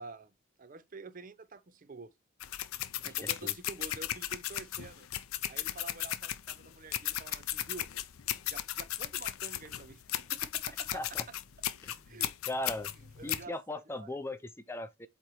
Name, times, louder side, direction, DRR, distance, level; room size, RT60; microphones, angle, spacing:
voice 1, 0.0-2.1 3.0-5.1 5.5-7.9 8.5-11.2 12.1-12.3 13.2-14.2, right 3 dB, 40° right, 0.5 m, -48 dB
sound 1, 2.4-13.4, left 12 dB, 80° left, 0.5 m, -36 dB
voice 2, 3.2-3.5 10.9-11.2 11.8-12.2 12.5-12.9 13.2-15.1, left 1 dB, 10° left, 0.4 m, -38 dB
8.2 x 3.1 x 4.4 m
head